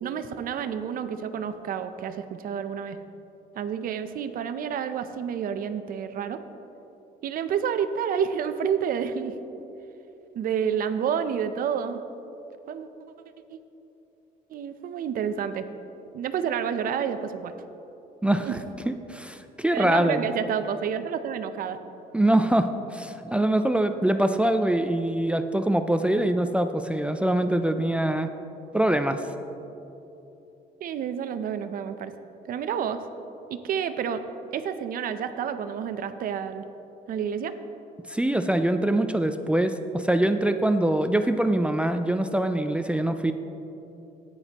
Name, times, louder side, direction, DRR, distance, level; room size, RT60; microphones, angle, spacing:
voice 1, 0.0-3.0 3.5-6.4 7.2-9.3 10.3-12.0 12.7-12.9 13.5-13.6 14.5-15.7 16.1-17.5 18.4-18.6 19.7-21.8 30.8-32.1 32.5-33.0 33.5-34.3 34.5-36.6 37.1-37.5, right 8 dB, 55° right, 9 dB, 0.6 m, -29 dB
voice 2, 18.2-18.6 18.9-20.3 22.1-28.3 28.7-29.2 38.1-43.3, right 1 dB, 5° right, 7 dB, 0.4 m, -24 dB
13.5 x 9.9 x 2.9 m, 3.0 s
cardioid pair, 110°, 17 cm